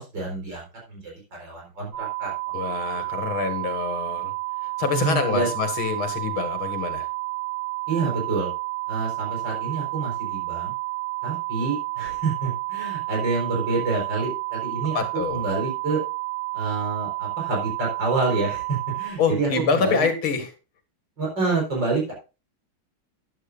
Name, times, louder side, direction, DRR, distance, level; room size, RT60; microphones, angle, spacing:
voice 1, 0.0-2.3 2.7-3.1 4.9-5.5 7.9-8.5 8.9-10.7 11.2-15.0 15.3-16.0 16.5-20.1 21.2-22.1, right 3 dB, 60° right, -2 dB, 4.9 m, -28 dB
sound 1, 1.9-19.1, right 24 dB, 40° right, 1.7 m, -30 dB
voice 2, 2.5-4.3 4.6-7.1 14.9-15.4 19.2-20.5, left 5 dB, 75° left, 6 dB, 2.7 m, -26 dB
13.0 x 11.0 x 2.5 m, 0.30 s
omnidirectional pair, 2.3 m